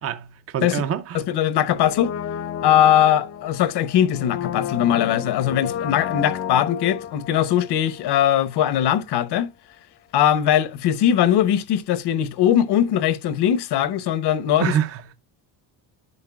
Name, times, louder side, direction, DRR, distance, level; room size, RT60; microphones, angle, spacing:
voice 1, 0.0-1.2 14.6-15.1, right 9 dB, 35° right, 0.5 m, -26 dB
voice 2, 1.1-2.1 2.6-9.5 10.1-14.7, left 10 dB, 65° left, 0.8 m, -20 dB
Brass instrument, 1.8-8.6 8.9-9.0, left 9 dB, 35° left, 0.5 m, -32 dB
11.0 x 5.1 x 2.3 m
cardioid pair, 160°, 44 cm